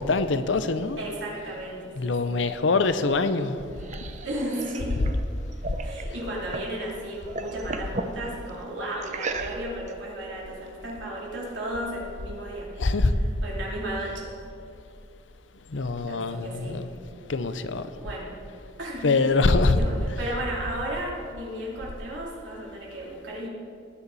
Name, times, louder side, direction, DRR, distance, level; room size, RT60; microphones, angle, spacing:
voice 1, 0.0-1.0 2.0-3.6 12.8-13.1 15.7-16.9 17.3-17.9 19.0-19.8, left 3 dB, 75° left, 11 dB, 0.7 m, -24 dB
voice 2, 1.0-2.4 4.2-5.1 5.8-12.7 13.0-14.3 16.1-16.8 18.0-18.3 18.8-23.5, right 1 dB, 75° right, -4 dB, 3.3 m, -34 dB
sound 1, 3.4-6.8 7.1-8.2 9.0-9.9, right 3 dB, 40° right, 0.7 m, -35 dB
19.0 x 9.9 x 4.1 m, 2.5 s
head